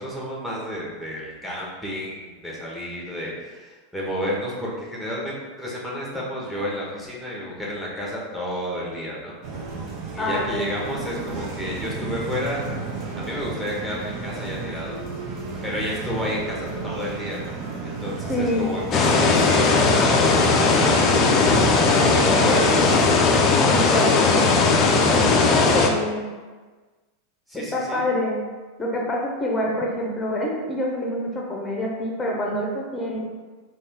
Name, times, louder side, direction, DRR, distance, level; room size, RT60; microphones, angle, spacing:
voice 1, 0.0-9.4 10.1-12.6 13.2-15.0 15.6-17.4 17.8-21.1 22.1-22.9 27.5-28.1, equal, ahead, -5 dB, 1.2 m, -31 dB
sound 1, 9.4-23.1, right 4 dB, 45° right, 0.8 m, -33 dB
voice 2, 10.2-10.7 18.3-18.8 23.7-24.4 25.1-26.2 27.5-28.5 28.8-33.2, left 1 dB, 20° left, -1 dB, 0.9 m, -26 dB
sound 2, 18.9-25.9, left 4 dB, 40° left, 0.5 m, -18 dB
4.0 x 2.5 x 3.7 m, 1.4 s
figure-of-eight pair, 90°, 0 cm